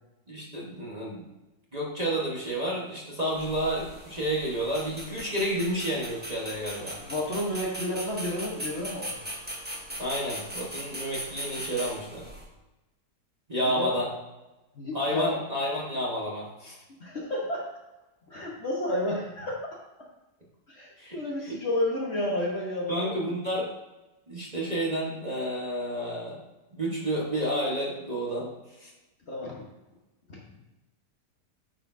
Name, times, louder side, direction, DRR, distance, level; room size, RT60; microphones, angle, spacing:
voice 1, 0.3-1.2 1.7-7.0 10.0-12.3 13.5-14.1 14.9-16.8 21.0-21.6 22.9-23.7 24.3-26.4 26.7-28.5 28.8-28.9, equal, 25° right, -5 dB, 1.4 m, -30 dB
sound 1, 3.3-12.5, equal, 5° right, 0.9 m, -39 dB
voice 2, 7.1-9.2 13.6-13.9 14.7-15.4 17.0-17.6 18.3-19.8 20.7-23.4 29.3-29.6 30.3-30.4, left 1 dB, 40° left, -3 dB, 1.4 m, -31 dB
9.1 x 6.9 x 2.7 m, 1.0 s
omnidirectional pair, 1.9 m